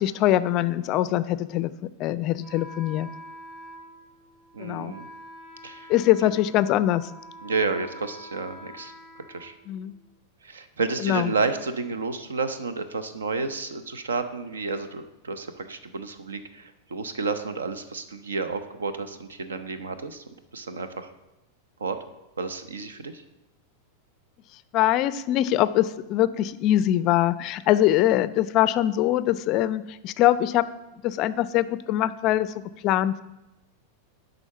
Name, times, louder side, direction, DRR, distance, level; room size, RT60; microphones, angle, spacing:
voice 1, 0.0-3.1 4.6-4.9 5.9-7.1 9.7-9.9 11.0-11.3 24.7-30.7 31.0-32.5 32.8-33.2, left 13 dB, 40° left, 15 dB, 0.4 m, -23 dB
Wind instrument woodwind instrument, 2.4-10.1, equal, 25° right, 3.0 m, -46 dB
voice 2, 4.5-5.1 5.6-5.9 7.4-8.9 9.3-9.6 10.4-20.2 20.5-21.1 21.8-22.0 22.4-23.2, right 4 dB, 70° right, 11 dB, 0.7 m, -31 dB
10.5 x 3.9 x 6.7 m, 0.95 s
figure-of-eight pair, 90°, 0 cm